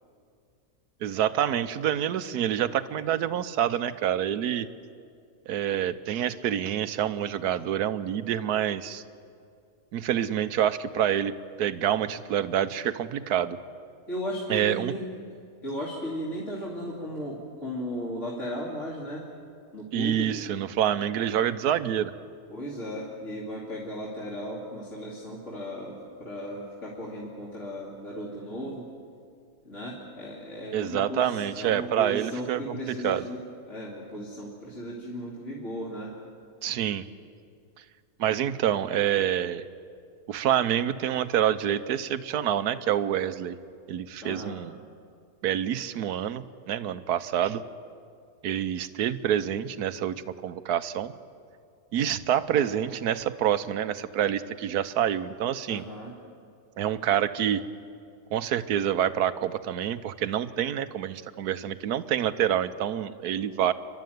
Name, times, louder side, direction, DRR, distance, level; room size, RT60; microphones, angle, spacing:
voice 1, 1.0-4.7 5.5-9.0 9.9-11.3 11.6-13.6 14.5-14.9 19.9-22.1 30.7-33.3 36.6-37.1 38.2-39.7 40.3-43.6 43.9-44.8 45.4-47.6 48.4-51.1 51.9-55.8 56.8-57.6 58.3-63.7, right 10 dB, 85° right, 13 dB, 1.3 m, -27 dB
voice 2, 14.1-15.0 15.6-19.2 19.7-20.3 22.5-28.9 29.6-36.1 44.2-44.6 55.7-56.1, equal, 50° left, -6 dB, 3.3 m, -36 dB
29.0 x 12.5 x 9.4 m, 2.4 s
omnidirectional pair, 1.6 m